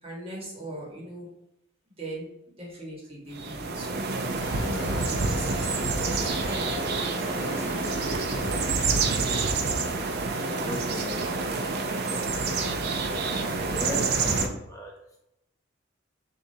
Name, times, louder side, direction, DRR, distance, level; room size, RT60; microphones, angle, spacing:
voice 1, 0.0-1.3 2.0-2.3 2.6-4.0 4.6-5.7 6.0-6.8 7.4-9.2 10.4-11.5 12.1-12.9, right 1 dB, 30° right, -3 dB, 1.4 m, -40 dB
sound 1, 3.3-14.5, right 3 dB, 55° right, 0.5 m, -28 dB
sound 2, 4.4-9.6, left 2 dB, 90° left, 0.8 m, -42 dB
voice 2, 10.5-11.2 13.7-15.2, equal, 15° left, -2 dB, 0.6 m, -37 dB
6.7 x 2.5 x 2.7 m, 0.86 s
head